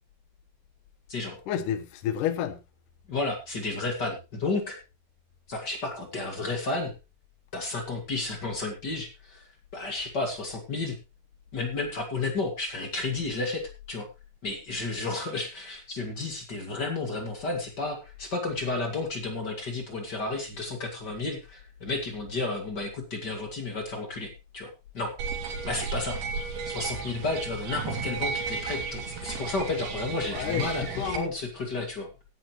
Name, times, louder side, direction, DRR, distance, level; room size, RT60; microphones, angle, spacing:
voice 1, 1.5-2.6 30.3-31.3, left 10 dB, 65° left, 2.4 m, -30 dB
voice 2, 3.1-4.8 5.5-6.9 7.5-9.4 9.7-11.0 11.5-14.1 14.4-25.1 25.6-26.2 26.7-32.1, left 3 dB, 35° left, 1.9 m, -32 dB
sound 1, 25.2-31.2, right 5 dB, 75° right, 4.2 m, -34 dB
16.5 x 10.5 x 3.1 m
omnidirectional pair, 4.6 m